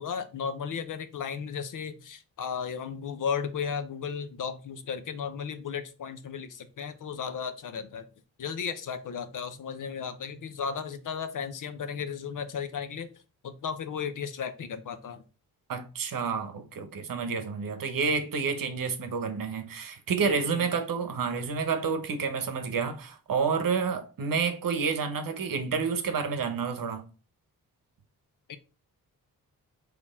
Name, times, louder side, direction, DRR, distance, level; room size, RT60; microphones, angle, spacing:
voice 1, 0.0-8.1 8.4-13.1 13.4-15.2 17.3-17.4 20.2-20.7 28.5-28.6, left 6 dB, 55° left, 0.7 m, -35 dB
voice 2, 15.7-27.1, right 5 dB, 60° right, 0.9 m, -29 dB
4.2 x 3.0 x 3.6 m
cardioid pair, 60°, 38 cm